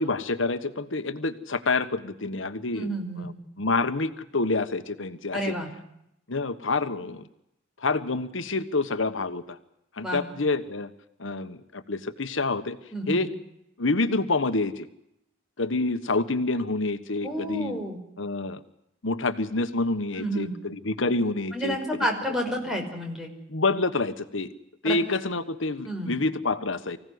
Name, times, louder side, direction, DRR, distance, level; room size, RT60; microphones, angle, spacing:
voice 1, 0.0-2.9 3.2-3.3 3.6-5.5 6.3-7.3 7.8-9.6 9.9-10.9 11.2-12.8 13.1-13.3 13.8-14.9 15.6-17.8 18.2-18.6 19.0-21.8 23.5-24.5 24.8-27.0, left 3 dB, 85° left, 10 dB, 1.4 m, -27 dB
voice 2, 2.7-3.3 5.3-5.7 10.0-10.2 12.9-13.2 17.2-18.0 20.2-20.5 21.5-23.3 24.8-25.0 25.9-26.2, equal, ahead, 1 dB, 5.2 m, -30 dB
25.0 x 16.5 x 9.6 m, 0.81 s
head